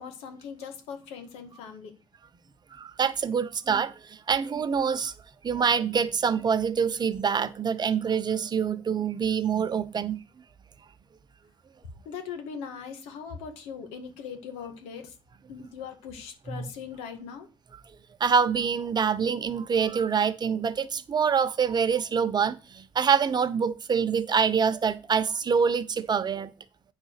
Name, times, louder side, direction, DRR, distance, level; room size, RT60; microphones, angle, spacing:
voice 1, 0.0-1.9 12.1-15.2 15.5-17.5, left 6 dB, 90° left, 1.8 m, -40 dB
voice 2, 2.7-5.1 5.4-10.2 16.5-16.7 18.2-26.5, right 6 dB, 45° right, 1.0 m, -25 dB
8.9 x 4.0 x 6.7 m
supercardioid pair, 65°, 10 cm